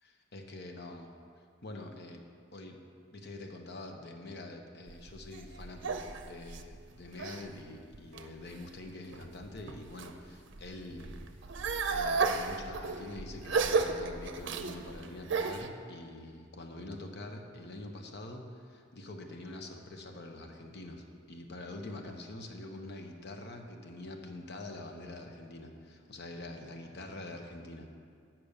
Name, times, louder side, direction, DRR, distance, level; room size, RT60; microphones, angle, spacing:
voice 1, 0.0-1.1 1.6-2.2 2.5-2.8 3.1-11.1 11.9-27.9, left 2 dB, 60° left, 3 dB, 0.9 m, -45 dB
sound 1, 4.9-7.5 7.9-8.5 9.1-10.1 10.5-15.7, right 4 dB, 65° right, 0.6 m, -33 dB
8.6 x 6.0 x 6.6 m, 2.3 s
head